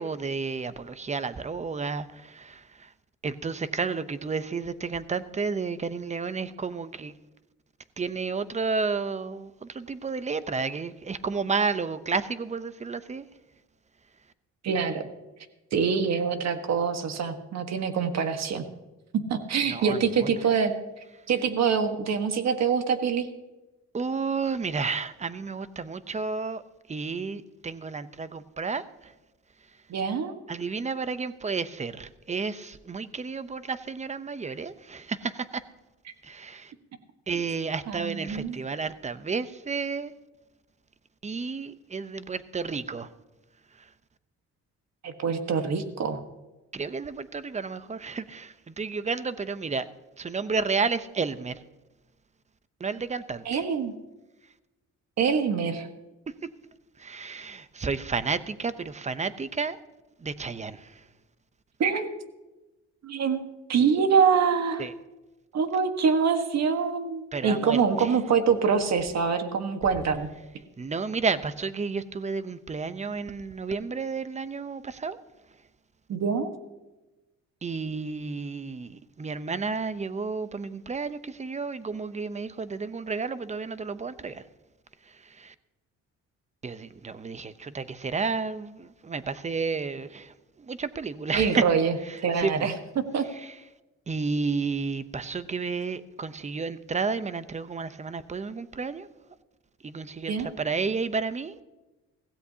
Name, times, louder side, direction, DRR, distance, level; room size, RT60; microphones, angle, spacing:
voice 1, 0.0-2.9 3.2-7.2 8.0-13.3 19.7-20.3 23.9-26.6 26.9-29.1 30.5-35.6 36.2-36.7 37.3-40.1 41.2-43.1 43.8-43.9 46.7-49.9 50.2-51.6 52.8-53.5 57.0-59.8 60.2-61.0 64.8-64.9 67.3-68.1 70.8-75.2 77.6-84.4 85.1-85.5 86.6-91.6 92.1-92.7 93.3-93.5 94.1-99.1 99.8-101.6, right 4 dB, 25° right, 0.7 m, -31 dB
voice 2, 14.6-15.0 15.7-18.6 19.1-20.7 21.3-23.3 29.9-30.4 37.9-38.6 45.0-46.2 53.4-53.9 55.2-55.9 61.8-62.2 63.0-64.9 65.5-70.3 76.1-76.5 91.3-91.9 92.2-93.2 100.3-100.5, right 6 dB, 60° right, 1.5 m, -25 dB
16.5 x 16.0 x 2.8 m
cardioid pair, 90°, 30 cm